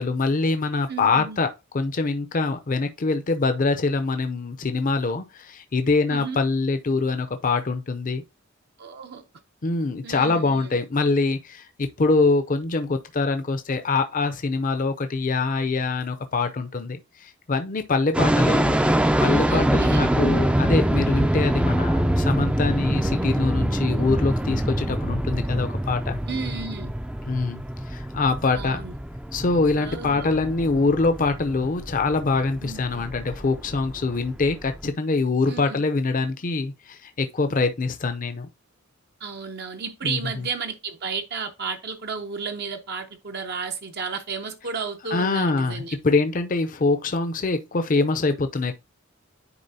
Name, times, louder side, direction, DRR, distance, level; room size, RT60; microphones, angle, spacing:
voice 1, 0.0-1.5 1.7-8.2 9.6-18.7 19.2-26.2 27.3-27.6 27.9-28.8 29.3-38.5 40.0-40.2 45.1-48.7, left 3 dB, 40° left, 0.6 m, -24 dB
voice 2, 0.9-1.4 6.1-6.4 8.8-9.3 10.0-10.7 19.5-20.1 26.3-26.9 28.5-28.9 29.8-30.3 32.6-33.0 35.5-35.8 39.2-46.0, right 5 dB, 55° right, 0.7 m, -33 dB
sound 1, 18.1-34.9, right 1 dB, 5° right, 0.4 m, -24 dB
9.8 x 4.1 x 2.7 m
head